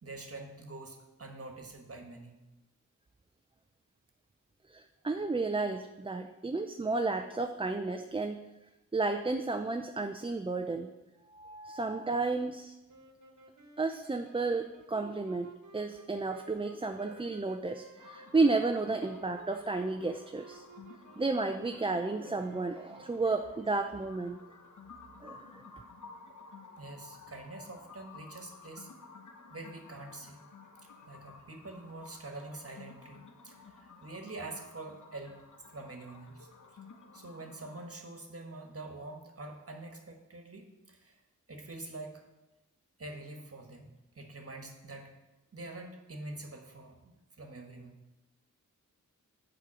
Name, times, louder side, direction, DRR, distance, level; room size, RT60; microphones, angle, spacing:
voice 1, 0.0-2.4 11.9-12.2 26.8-28.9 29.5-30.4 31.1-35.5 35.7-36.5 37.1-41.2 41.5-42.2 43.0-43.9 44.1-45.2 45.5-48.0, right 2 dB, 45° right, 3 dB, 1.4 m, -45 dB
voice 2, 4.7-8.4 8.9-10.9 11.3-12.7 13.8-20.6 21.2-24.4 25.2-25.5, right 3 dB, 15° right, 6 dB, 0.4 m, -32 dB
sound 1, 12.9-23.6, right 4 dB, 60° right, 1.2 m, -54 dB
sound 2, 18.0-37.9, left 4 dB, 65° left, 1.0 m, -54 dB
7.4 x 5.1 x 6.1 m, 1.0 s
cardioid pair, 55°, 32 cm